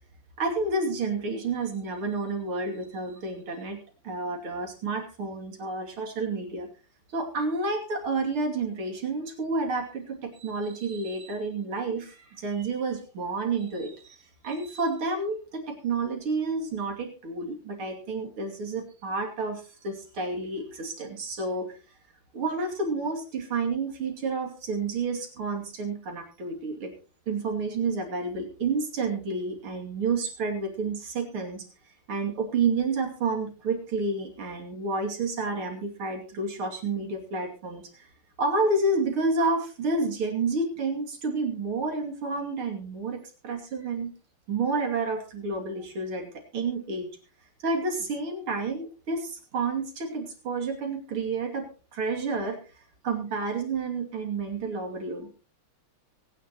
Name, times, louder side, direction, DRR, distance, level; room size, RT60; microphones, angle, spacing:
voice 1, 0.4-3.8 4.0-6.7 7.1-14.2 14.4-21.7 22.3-26.9 27.3-31.6 32.1-38.1 38.4-44.1 44.5-47.1 47.6-51.7 51.9-52.6 53.0-55.3, right 3 dB, 75° right, 2 dB, 3.5 m, -30 dB
23.5 x 9.9 x 3.0 m, 0.35 s
omnidirectional pair, 2.4 m